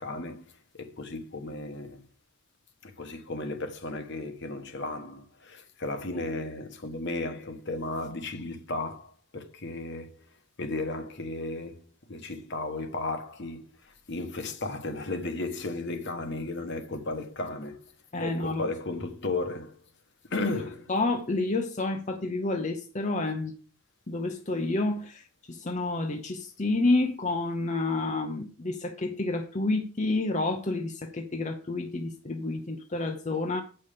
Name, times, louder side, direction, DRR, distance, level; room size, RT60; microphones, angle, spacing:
voice 1, 0.0-2.0 2.8-10.2 10.6-17.9 18.2-19.7 20.3-20.8, left 2 dB, 55° left, 1.2 m, -35 dB
voice 2, 18.1-18.6 20.4-20.6 20.9-23.5 24.1-25.2 25.5-33.6, left 2 dB, 35° left, 0.7 m, -29 dB
8.0 x 5.6 x 6.7 m
head